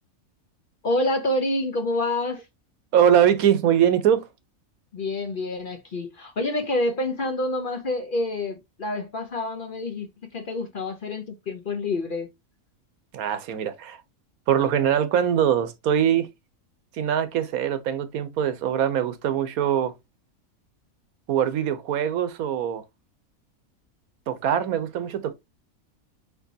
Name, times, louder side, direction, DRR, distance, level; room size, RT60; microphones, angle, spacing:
voice 1, 0.8-2.4 4.9-12.3, left 2 dB, 45° left, 0.8 m, -27 dB
voice 2, 2.9-4.3 13.1-14.0 14.5-16.3 16.9-19.9 21.3-22.8 24.3-25.3, right 9 dB, 80° right, 1.2 m, -22 dB
4.6 x 4.3 x 2.7 m
omnidirectional pair, 1.5 m